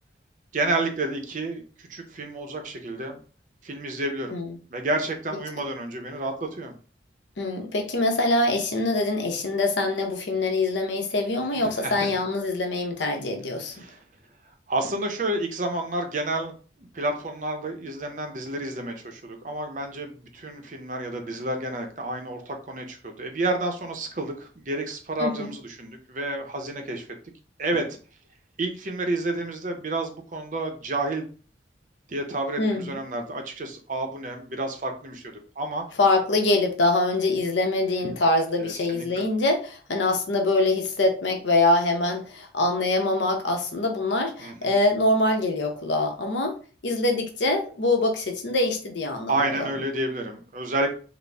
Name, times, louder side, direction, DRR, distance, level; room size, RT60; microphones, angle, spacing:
voice 1, 0.5-3.2 3.6-4.4 4.7-6.8 11.5-12.1 13.7-14.0 14.7-16.5 16.9-27.0 27.6-27.9 28.6-31.2 32.1-35.2 35.6-35.8 38.0-38.1 38.6-39.2 44.4-44.7 49.3-50.9, right 2 dB, 40° right, 4 dB, 0.6 m, -30 dB
voice 2, 7.4-13.7 25.2-25.5 32.6-33.0 36.0-46.5 46.8-49.7, left 2 dB, 70° left, 4 dB, 0.7 m, -24 dB
4.0 x 2.0 x 3.4 m, 0.38 s
head